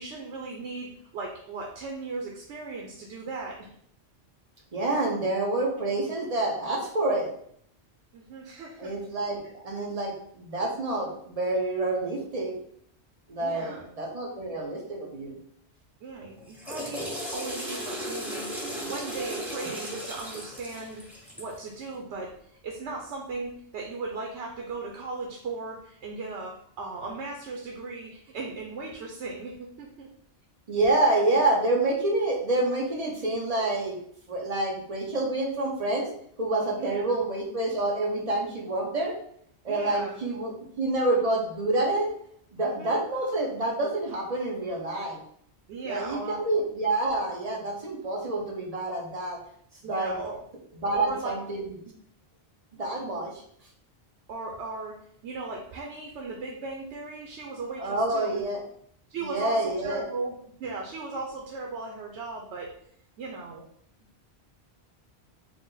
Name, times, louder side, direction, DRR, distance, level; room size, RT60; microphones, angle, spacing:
voice 1, 0.0-3.7 8.1-8.9 13.4-13.9 16.0-18.5 18.8-21.0 21.4-30.1 36.8-37.2 39.7-40.2 42.6-43.0 45.7-46.5 49.8-50.4 50.8-51.3 54.3-58.4 59.1-62.7 63.2-63.6, right 3 dB, 90° right, 0 dB, 0.9 m, -37 dB
voice 2, 4.7-7.3 8.8-12.5 13.3-15.3 30.7-34.0 34.3-36.1 36.4-39.2 39.6-42.1 42.5-45.2 45.8-49.4 49.8-50.1 50.8-51.7 52.7-53.4 57.8-58.6 59.2-60.0, right 2 dB, 40° right, -1 dB, 0.9 m, -27 dB
Water / Toilet flush, 16.4-21.6, equal, ahead, 0.9 m, -36 dB
4.8 x 2.1 x 3.8 m, 0.66 s
omnidirectional pair, 1.1 m